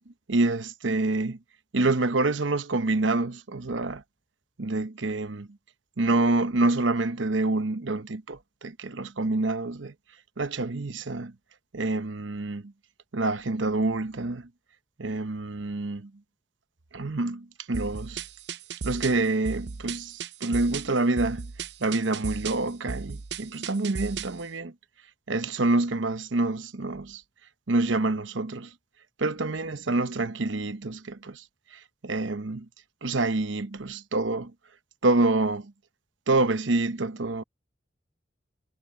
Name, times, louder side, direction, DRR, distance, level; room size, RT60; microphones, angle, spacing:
voice 1, 0.3-1.4 1.7-4.0 4.6-5.5 6.0-9.9 10.4-11.3 11.7-12.7 13.1-14.5 15.0-16.1 16.9-18.3 18.8-21.5 21.8-24.7 25.3-27.2 27.7-28.7 29.2-31.4 31.7-32.7 33.0-34.5 35.0-35.7 36.3-37.4, right 2 dB, 85° right, 1.0 m, -27 dB
sound 1, 17.7-24.4, right 5 dB, 65° right, 0.6 m, -36 dB
head